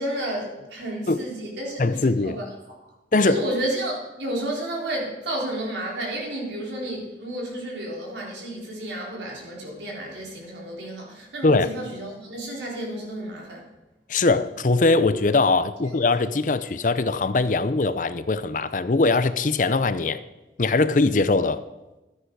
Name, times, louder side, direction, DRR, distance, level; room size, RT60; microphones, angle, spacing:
voice 1, 0.0-2.5 3.2-13.6, right 1 dB, 80° right, 4.1 m, -31 dB
voice 2, 1.8-2.4 3.1-3.4 11.4-11.7 14.1-20.2 20.6-21.6, left 3 dB, 45° left, 0.6 m, -21 dB
13.5 x 9.9 x 4.7 m
head